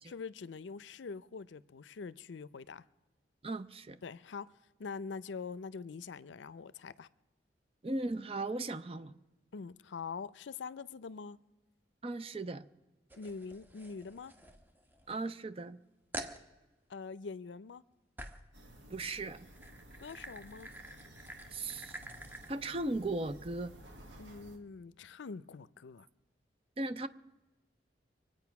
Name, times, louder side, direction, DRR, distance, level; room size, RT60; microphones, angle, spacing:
voice 1, 0.1-2.8 4.0-4.5 4.8-7.1 9.5-11.4 13.1-14.3 16.9-17.8 20.0-20.7 24.2-26.1, left 5 dB, 80° left, 0.5 m, -44 dB
voice 2, 3.4-4.0 7.8-9.1 12.0-12.7 15.1-15.8 18.9-19.5 21.5-22.0 22.5-23.7 26.8-27.1, right 2 dB, 30° right, 0.5 m, -37 dB
sound 1, 13.1-15.2 15.6-15.7 16.1-16.4 18.2-18.5 19.3-22.5, right 1 dB, 10° right, 1.0 m, -48 dB
sound 2, 18.5-24.6, equal, 80° right, 2.2 m, -54 dB
24.5 x 8.8 x 5.9 m
head